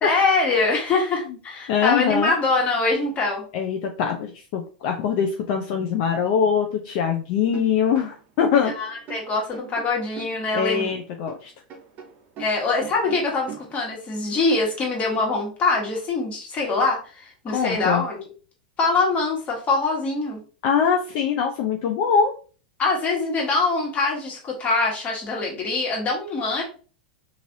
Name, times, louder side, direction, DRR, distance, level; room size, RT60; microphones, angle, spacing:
voice 1, 0.0-3.4 8.6-10.9 12.4-18.2 18.8-20.4 22.8-26.6, left 3 dB, 30° left, -1 dB, 1.3 m, -23 dB
voice 2, 1.7-2.3 3.5-8.7 10.5-11.5 17.5-18.0 20.6-22.3, left 7 dB, 55° left, 3 dB, 0.5 m, -23 dB
sound 1, 7.5-11.4 11.7-13.7, right 7 dB, 40° right, 0.7 m, -40 dB
3.2 x 2.5 x 2.6 m, 0.38 s
hypercardioid pair, 105°, 5 cm